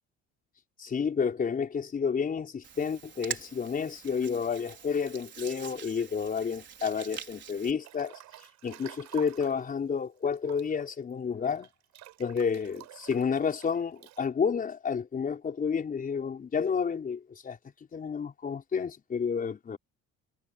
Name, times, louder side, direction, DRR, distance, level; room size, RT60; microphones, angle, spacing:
voice 1, 0.8-8.2 8.6-11.7 12.2-17.6 17.9-19.8, left 6 dB, 30° left, 5.0 m, -30 dB
Hands, 2.6-7.7, right 8 dB, 35° right, 4.7 m, -44 dB
Breathing / Bathtub (filling or washing) / Splash splatter, 7.8-9.7 10.3-14.2, right 15 dB, 65° right, 6.9 m, -49 dB
cardioid pair, 145°, 30 cm